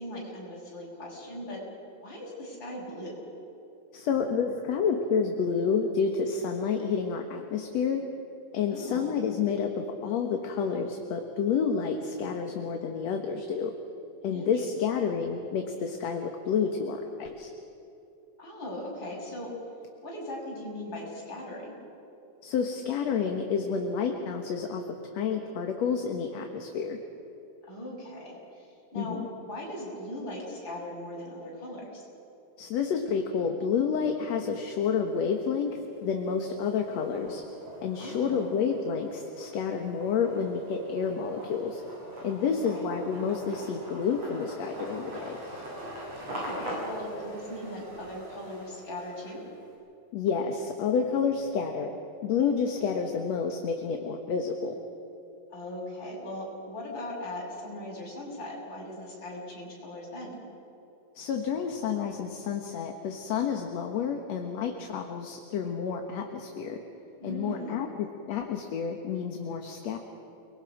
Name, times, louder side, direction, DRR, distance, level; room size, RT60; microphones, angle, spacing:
voice 1, 0.0-1.6 2.0-3.3 8.7-9.2 14.3-14.5 18.4-19.5 20.0-21.8 27.7-29.2 29.5-32.0 38.0-38.5 42.4-42.8 46.2-49.4 55.5-60.4 67.2-67.9, left 1 dB, 35° left, -3 dB, 7.3 m, -39 dB
voice 2, 3.9-8.0 8.5-13.7 14.2-17.5 22.4-27.0 29.0-29.3 32.6-37.4 37.8-41.8 42.2-45.4 50.1-51.9 52.2-54.7 61.2-66.8 67.2-70.0, left 6 dB, 65° left, 4 dB, 2.4 m, -29 dB
sound 1, 35.1-35.7 36.1-49.6, equal, 55° right, 8.5 m, -43 dB
30.0 x 22.0 x 6.0 m, 2.9 s
omnidirectional pair, 3.5 m